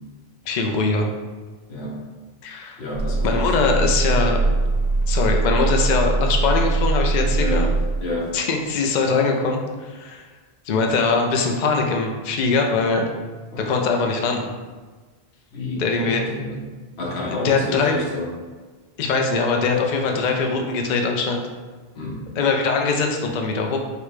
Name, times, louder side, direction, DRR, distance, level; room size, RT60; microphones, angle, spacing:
voice 1, 0.5-1.1 2.4-2.8 3.2-4.4 5.1-7.7 8.3-10.2 10.7-13.1 13.6-14.5 15.8-16.2 17.3-18.0 19.0-21.4 22.4-23.8, left 4 dB, 55° left, 2 dB, 0.6 m, -22 dB
voice 2, 1.7-2.0 2.8-3.8 7.4-7.7 8.0-8.4 13.5-13.8 15.5-16.6 17.0-18.3 22.0-22.3, left 1 dB, 85° left, 0 dB, 1.1 m, -29 dB
sound 1, 2.9-8.2, right 3 dB, 50° right, 0.5 m, -21 dB
4.9 x 2.2 x 4.7 m, 1.4 s
omnidirectional pair, 1.1 m